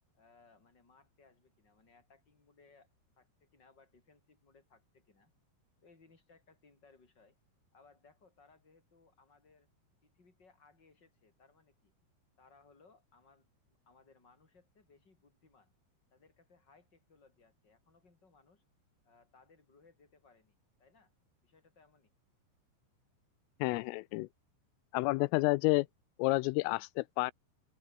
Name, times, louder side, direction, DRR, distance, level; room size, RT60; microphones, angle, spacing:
voice 1, 0.1-2.9 3.2-5.3 5.8-7.4 7.7-9.7 10.0-11.9 12.4-15.7 16.1-18.6 19.0-21.1 21.4-22.1, left 4 dB, 20° left, 5.4 m, -65 dB
voice 2, 23.6-24.3 24.9-25.9 26.2-27.3, left 23 dB, 85° left, 3.2 m, -30 dB
omnidirectional pair, 5.8 m